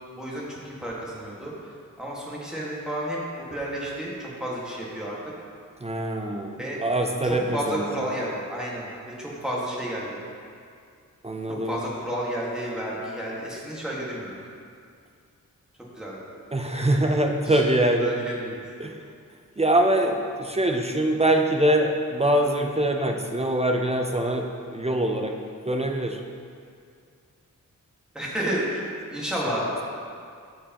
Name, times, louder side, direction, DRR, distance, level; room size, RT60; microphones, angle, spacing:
voice 1, 0.2-1.5 2.0-3.2 3.5-5.1 6.6-6.8 7.2-8.9 9.2-10.2 11.7-14.3 15.9-16.2 16.7-17.1 17.5-18.6 28.1-28.8 29.1-29.8, equal, ahead, -6 dB, 1.7 m, -31 dB
voice 2, 5.8-7.8 11.2-11.8 16.5-18.1 18.8-19.0 19.6-25.4 25.6-26.2 29.5-29.6, right 1 dB, 20° right, 2 dB, 0.5 m, -23 dB
13.0 x 4.6 x 3.0 m, 2.3 s
wide cardioid pair, 95°, 33 cm